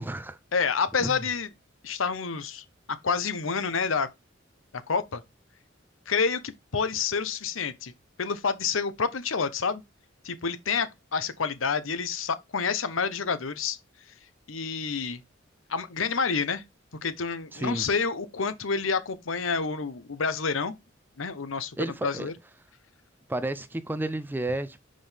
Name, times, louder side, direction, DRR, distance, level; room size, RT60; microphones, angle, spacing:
voice 1, 0.0-0.4 1.0-1.1 17.5-17.9 21.8-22.3 23.3-24.8, right 1 dB, 10° right, 0.4 m, -31 dB
voice 2, 0.5-1.5 1.8-2.6 3.0-4.1 4.7-5.2 6.1-7.9 8.2-9.8 10.2-13.8 14.5-15.2 15.7-16.6 17.0-20.7 21.2-21.8 22.0-22.3, left 5 dB, 85° left, 0.9 m, -28 dB
5.8 x 5.1 x 3.5 m
head